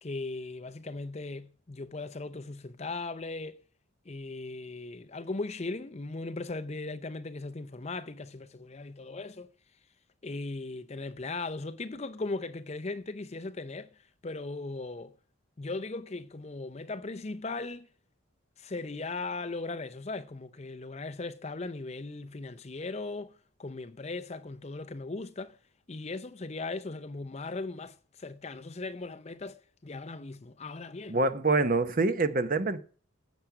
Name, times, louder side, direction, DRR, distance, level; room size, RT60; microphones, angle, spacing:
voice 1, 0.0-3.6 4.1-9.5 10.2-13.9 14.2-15.1 15.6-17.9 18.6-23.3 23.6-25.6 25.9-31.2, left 3 dB, 30° left, 0.6 m, -38 dB
voice 2, 31.1-32.8, right 3 dB, 40° right, 0.8 m, -26 dB
9.4 x 7.8 x 5.8 m
head